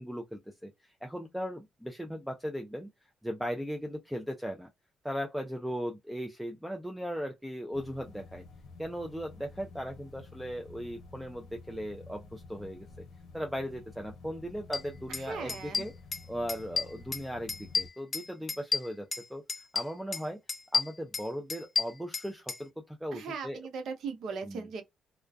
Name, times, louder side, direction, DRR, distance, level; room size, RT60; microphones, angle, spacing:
voice 1, 0.0-2.9 3.2-4.7 5.0-8.4 8.8-12.9 13.3-15.9 16.3-19.4 19.7-20.4 20.7-23.6 24.4-24.7, equal, 5° right, 0.5 m, -38 dB
sound 1, 7.7-17.9, left 3 dB, 70° left, 0.7 m, -51 dB
sound 2, 14.7-14.8 15.1-15.2 15.5-16.2 16.5-17.2 17.5-19.2 19.5-20.2 20.5-22.6, left 5 dB, 35° left, 0.6 m, -31 dB
voice 2, 15.1-15.9 23.1-24.8, right 5 dB, 70° right, 0.7 m, -38 dB
2.4 x 2.3 x 2.2 m
cardioid pair, 90°, 0 cm